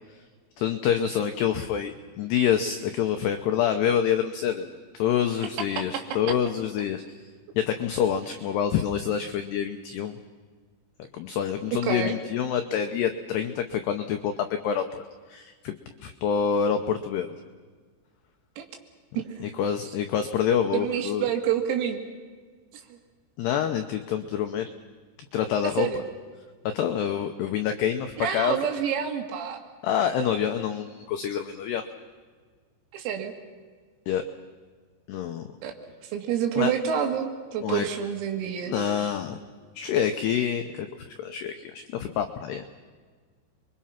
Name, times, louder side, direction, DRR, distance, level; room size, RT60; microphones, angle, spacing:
voice 1, 0.6-7.0 7.6-10.2 11.1-15.0 15.3-15.7 16.0-17.4 19.4-21.3 23.4-24.7 25.3-25.9 26.7-28.6 29.8-31.9 34.1-34.2 35.1-35.4 36.6-36.7 37.6-37.9 38.7-39.4 39.8-40.9 41.2-42.6, left 8 dB, 90° left, 7 dB, 2.3 m, -27 dB
voice 2, 5.8-6.4 11.8-12.2 18.6-18.7 19.2-19.3 20.7-22.0 25.8-26.0 28.2-29.6 32.9-33.3 35.6-35.7 36.1-38.7, right 8 dB, 90° right, 4 dB, 4.9 m, -28 dB
29.5 x 23.0 x 5.8 m, 1.5 s
omnidirectional pair, 6.0 m